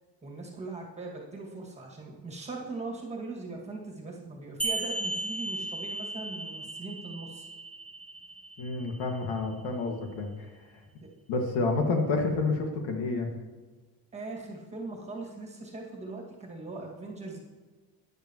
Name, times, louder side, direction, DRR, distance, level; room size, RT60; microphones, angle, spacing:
voice 1, 0.2-7.5 11.0-11.1 14.1-17.4, right 3 dB, 15° right, -1 dB, 2.0 m, -40 dB
sound 1, 4.6-9.6, right 2 dB, 5° left, 0.9 m, -36 dB
voice 2, 8.6-10.3 11.3-13.3, left 3 dB, 80° left, 3 dB, 2.0 m, -29 dB
13.5 x 10.5 x 3.0 m, 1.3 s
cardioid pair, 160°, 41 cm